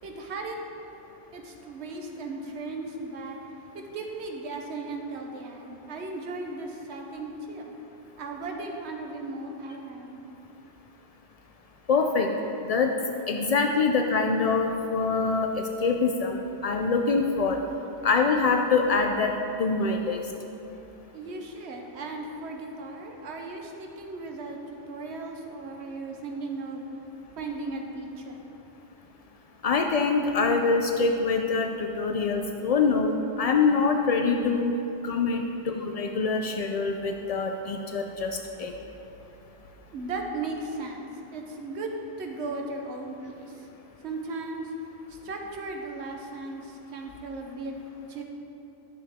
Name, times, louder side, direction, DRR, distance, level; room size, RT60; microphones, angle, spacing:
voice 1, 0.0-1.0 1.3-7.8 8.2-10.3 21.1-28.5 39.9-43.7 44.0-48.2, right 2 dB, 70° right, 2 dB, 1.1 m, -37 dB
voice 2, 11.9-12.3 12.7-12.9 13.3-15.5 15.8-16.4 16.6-17.6 18.0-19.3 19.6-20.2 29.6-34.7 35.0-38.7, left 4 dB, 75° left, 3 dB, 0.3 m, -24 dB
11.0 x 6.7 x 3.6 m, 3.0 s
omnidirectional pair, 1.2 m